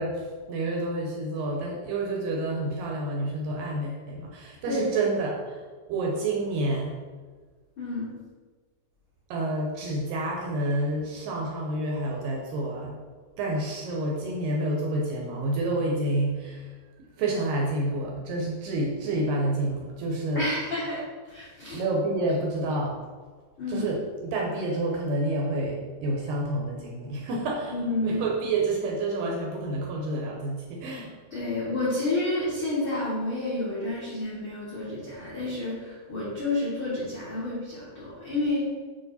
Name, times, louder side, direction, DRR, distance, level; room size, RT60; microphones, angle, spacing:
voice 1, 0.0-7.0 9.3-13.0 13.4-20.5 21.7-23.1 23.7-31.1, right 2 dB, 75° right, -1 dB, 2.1 m, -29 dB
voice 2, 7.8-8.1 20.3-21.0 21.3-21.8 23.6-23.9 27.7-28.2 31.3-38.7, left 2 dB, 80° left, -8 dB, 1.1 m, -30 dB
8.9 x 3.0 x 4.0 m, 1.4 s
omnidirectional pair, 4.5 m